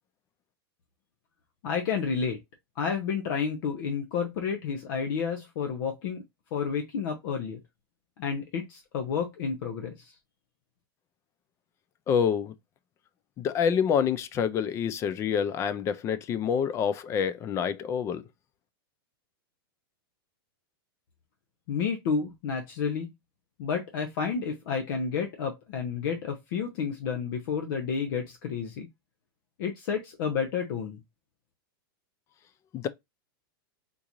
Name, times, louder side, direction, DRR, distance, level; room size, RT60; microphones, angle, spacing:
voice 1, 1.6-2.4 2.8-6.2 6.5-7.6 8.2-10.1 21.7-23.1 23.6-28.9 29.6-31.0, left 6 dB, 60° left, 0.8 m, -30 dB
voice 2, 12.1-12.5 13.4-18.2 32.7-32.9, left 7 dB, 20° left, 0.3 m, -27 dB
3.7 x 2.5 x 2.9 m
supercardioid pair, 145°, 13 cm